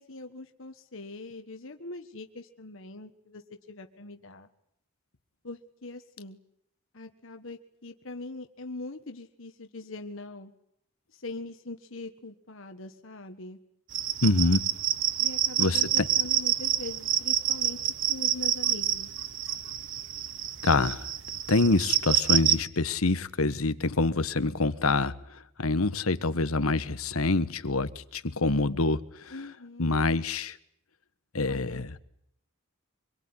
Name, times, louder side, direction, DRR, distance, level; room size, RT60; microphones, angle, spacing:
voice 1, 0.0-3.4 3.7-4.5 5.4-6.4 6.9-10.5 11.1-13.6 15.2-17.8 18.1-19.1 29.3-29.9 31.4-32.0, left 2 dB, 65° left, 1.6 m, -42 dB
sound 1, 13.9-22.6, right 11 dB, 65° right, 1.3 m, -28 dB
voice 2, 14.2-14.7 15.6-16.1 20.6-21.1 21.5-29.4 29.8-30.6 31.3-31.9, left 3 dB, 90° left, 1.4 m, -26 dB
25.5 x 22.0 x 9.8 m
head